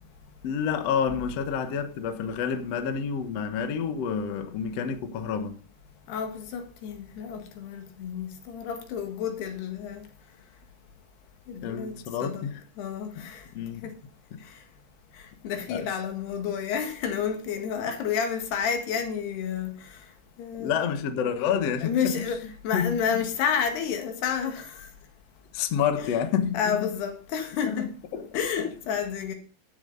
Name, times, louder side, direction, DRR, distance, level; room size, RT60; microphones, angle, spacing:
voice 1, 0.4-5.7 11.6-12.5 13.2-13.3 13.5-13.9 14.3-14.4 15.7-15.9 20.6-22.3 22.7-23.2 25.5-26.9 27.7-28.3, left 7 dB, 60° left, 1.8 m, -29 dB
voice 2, 6.1-10.1 11.5-11.9 12.2-12.5 12.8-13.4 13.8-13.9 15.4-19.7 20.4-20.8 21.8-24.9 26.0-26.1 26.5-27.9 28.3-29.3, left 7 dB, 85° left, 3.8 m, -30 dB
12.0 x 9.3 x 4.0 m
omnidirectional pair, 4.5 m